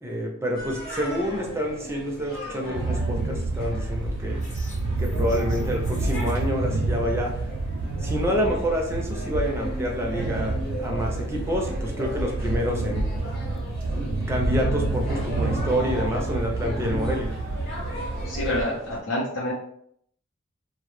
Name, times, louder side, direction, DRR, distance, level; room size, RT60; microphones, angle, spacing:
voice 1, 0.0-4.5 5.0-7.4 8.0-13.4 13.9-17.3, equal, 15° right, 0 dB, 0.4 m, -28 dB
sound 1, 0.5-19.0, equal, 50° left, 0.9 m, -37 dB
sound 2, 2.7-18.6, right 2 dB, 85° right, 0.3 m, -28 dB
sound 3, 4.3-6.5, left 1 dB, 35° left, 0.6 m, -47 dB
voice 2, 18.2-19.5, left 1 dB, 90° left, -6 dB, 0.6 m, -27 dB
2.1 x 2.0 x 3.0 m, 0.68 s
head